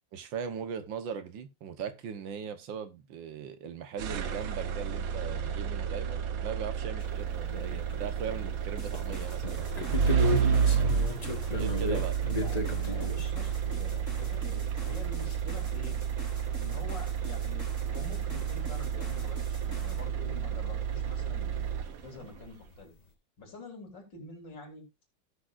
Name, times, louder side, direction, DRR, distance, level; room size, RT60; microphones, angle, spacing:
voice 1, 0.1-10.4 11.5-12.2, right 7 dB, 80° right, 1.8 m, -39 dB
sound 1, 4.0-22.3, right 7 dB, 60° right, 1.1 m, -31 dB
sound 2, 7.0-7.1 7.5-8.6 8.9-13.2 15.9-16.0 16.2-16.3 17.3-17.4 18.0-18.1 21.7-21.8 21.9-22.3, left 4 dB, 25° left, 1.2 m, -35 dB
sound 3, 8.8-20.1, right 1 dB, 10° right, 1.8 m, -49 dB
voice 2, 12.3-16.0 16.6-22.9 23.4-24.8, left 3 dB, 70° left, 4.1 m, -46 dB
17.0 x 6.3 x 2.5 m
omnidirectional pair, 2.0 m